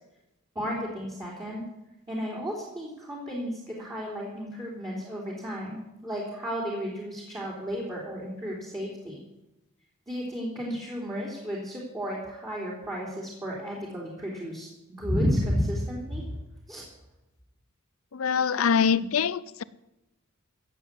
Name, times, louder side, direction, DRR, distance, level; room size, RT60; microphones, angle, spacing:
voice 1, 0.6-1.6 2.1-9.2 10.1-16.4 16.7-16.8 18.9-19.0, equal, 20° right, -4 dB, 3.5 m, -32 dB
voice 2, 18.1-19.6, left 6 dB, 70° left, 18 dB, 0.6 m, -24 dB
15.5 x 7.7 x 8.2 m, 0.95 s
head